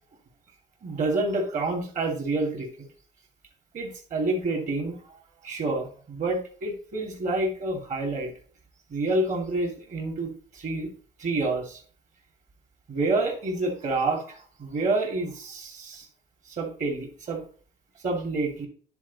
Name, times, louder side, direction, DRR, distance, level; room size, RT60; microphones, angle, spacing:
voice 1, 0.8-2.7 3.7-5.0 5.4-8.3 8.9-10.9 11.2-11.8 12.9-16.1 16.5-17.4 18.0-18.7, right 2 dB, 50° right, 3 dB, 2.7 m, -28 dB
10.0 x 4.2 x 4.2 m, 0.43 s
cardioid pair, 110°, 17 cm